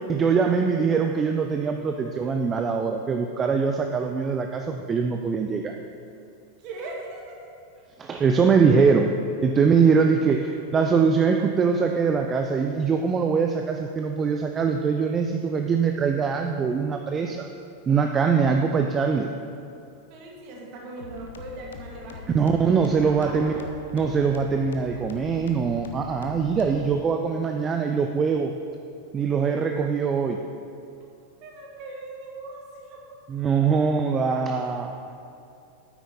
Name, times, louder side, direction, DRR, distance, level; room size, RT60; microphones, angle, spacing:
voice 1, 0.1-5.7 8.0-9.2 9.4-17.5 17.9-19.3 22.3-23.5 23.9-28.5 29.1-30.4 33.3-35.0, right 5 dB, 20° right, 4 dB, 0.5 m, -22 dB
voice 2, 6.6-7.4 20.1-23.6 31.4-33.1, right 2 dB, 40° right, -1 dB, 1.9 m, -40 dB
sound 1, 21.0-27.0, left 6 dB, 65° left, 0.7 m, -42 dB
9.0 x 8.9 x 4.2 m, 2.6 s
figure-of-eight pair, 90°, 0 cm